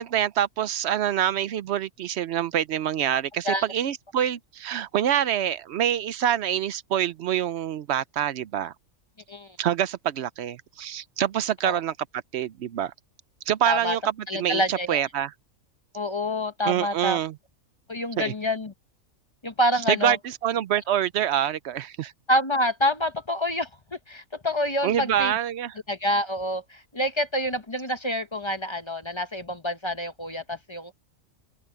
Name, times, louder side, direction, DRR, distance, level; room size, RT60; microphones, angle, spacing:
voice 1, 0.0-8.7 9.6-11.9 12.3-12.9 13.5-15.3 16.6-17.3 18.2-18.3 19.9-22.1 24.8-25.7, right 10 dB, 65° right, 0.7 m, -26 dB
voice 2, 13.7-14.0 14.3-15.0 15.9-17.2 17.9-18.7 19.4-20.2 22.3-25.4 25.9-30.9, left 1 dB, 25° left, 0.8 m, -27 dB
omnidirectional pair, 1.5 m